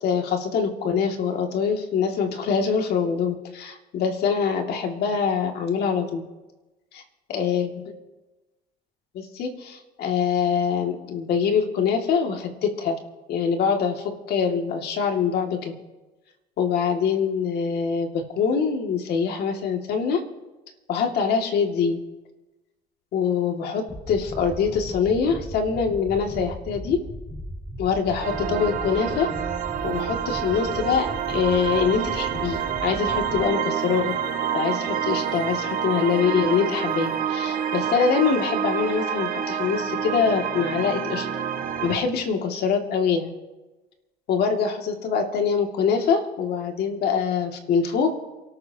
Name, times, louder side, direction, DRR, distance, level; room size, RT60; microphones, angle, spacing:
voice 1, 0.0-6.2 6.9-7.0 7.3-7.7 9.1-13.0 13.3-15.7 16.6-20.2 20.9-22.0 23.1-27.0 27.8-29.3 29.8-34.1 34.5-41.3 41.8-43.3 44.3-48.1, left 6 dB, 70° left, 3 dB, 2.3 m, -24 dB
sound 1, 23.9-33.4, equal, 15° left, 2.4 m, -37 dB
sound 2, 28.2-42.0, right 9 dB, 55° right, 1.9 m, -28 dB
28.5 x 13.5 x 2.9 m, 1.1 s
cardioid pair, 110°, 17 cm